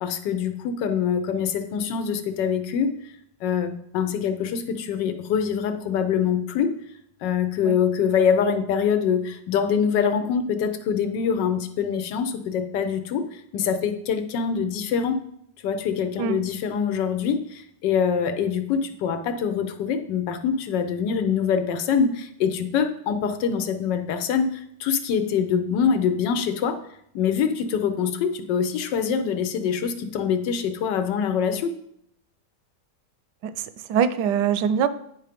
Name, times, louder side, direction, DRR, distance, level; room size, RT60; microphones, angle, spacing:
voice 1, 0.0-3.0 3.4-6.7 7.2-15.2 15.6-26.8 27.1-31.7, left 7 dB, 80° left, 9 dB, 1.4 m, -24 dB
voice 2, 33.4-34.9, right 8 dB, 75° right, 13 dB, 1.2 m, -23 dB
9.3 x 4.6 x 5.1 m, 0.74 s
omnidirectional pair, 1.9 m